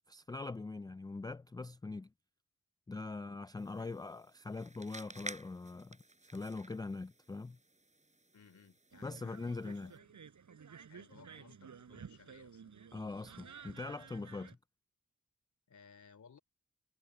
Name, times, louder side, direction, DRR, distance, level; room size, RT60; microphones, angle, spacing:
voice 1, 0.1-2.1 2.9-6.0 6.3-7.6 9.0-9.9 12.9-14.5, left 3 dB, 15° left, 0.3 m, -42 dB
voice 2, 3.1-3.5 3.8-4.1 8.3-10.2 10.9-12.9 14.4-14.6 15.7-16.4, left 6 dB, 70° left, 3.2 m, -61 dB
sound 1, 3.6-10.0, right 2 dB, 25° right, 5.0 m, -53 dB
sound 2, 8.9-14.5, right 6 dB, 80° right, 6.0 m, -54 dB
cardioid pair, 75°, 29 cm